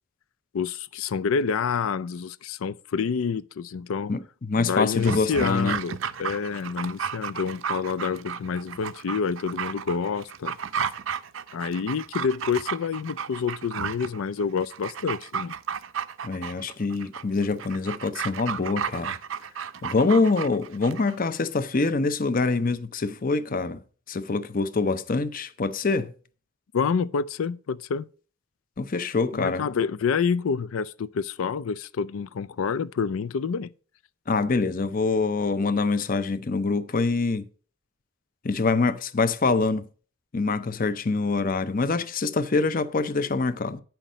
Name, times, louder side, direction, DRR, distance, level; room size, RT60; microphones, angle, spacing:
voice 1, 0.5-4.1 4.6-10.6 11.5-15.5 26.7-28.1 29.3-33.7, left 6 dB, 90° left, 0.4 m, -28 dB
voice 2, 4.1-5.8 16.2-19.1 19.8-23.8 24.1-26.1 28.8-29.6 34.3-37.5 38.4-39.9 40.3-43.8, left 3 dB, 45° left, 0.6 m, -25 dB
Dog, 4.9-21.2 21.5-21.6, right 7 dB, 70° right, 0.5 m, -33 dB
9.2 x 5.8 x 5.0 m
head